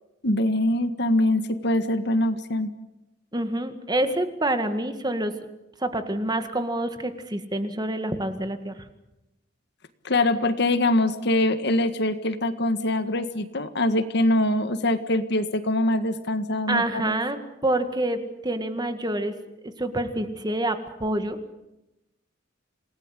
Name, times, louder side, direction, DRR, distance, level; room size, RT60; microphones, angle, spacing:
voice 1, 0.2-2.7 10.0-17.2, left 1 dB, 60° left, 10 dB, 1.7 m, -23 dB
voice 2, 3.3-5.3 5.8-8.8 16.7-19.3 19.6-21.4, right 1 dB, 20° right, 8 dB, 1.9 m, -27 dB
28.0 x 19.0 x 8.4 m, 0.93 s
head